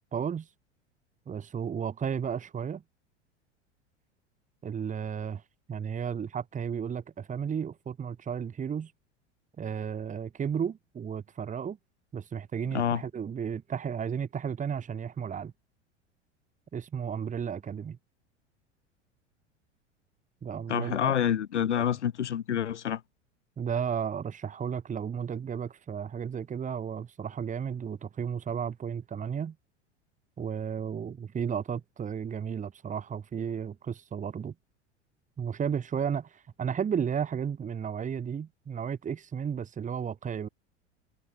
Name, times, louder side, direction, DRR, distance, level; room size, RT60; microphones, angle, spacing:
voice 1, 0.1-0.5 1.3-2.8 4.6-5.4 5.7-8.9 9.6-11.8 12.1-15.5 16.7-18.0 20.4-21.2 21.7-21.9 23.6-29.5 30.4-34.5 35.4-40.5, right 7 dB, 20° right, 2.4 m, -33 dB
voice 2, 12.7-13.0 20.7-23.0, left 9 dB, 70° left, 2.2 m, -27 dB
figure-of-eight pair, 85°, 36 cm